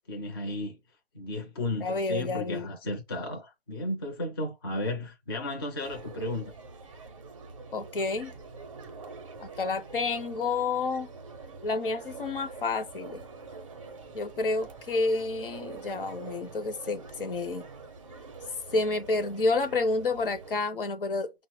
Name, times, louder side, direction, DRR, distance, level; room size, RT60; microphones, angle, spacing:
voice 1, 0.1-0.8 1.1-6.5, left 1 dB, 25° left, 0.5 m, -34 dB
voice 2, 1.8-2.7 7.7-8.3 9.4-11.1 11.6-13.2 14.1-17.6 18.7-21.3, left 3 dB, 60° left, 0.6 m, -29 dB
sound 1, 5.8-20.6, right 4 dB, 35° right, 0.5 m, -45 dB
5.5 x 2.0 x 3.0 m
figure-of-eight pair, 150°, 31 cm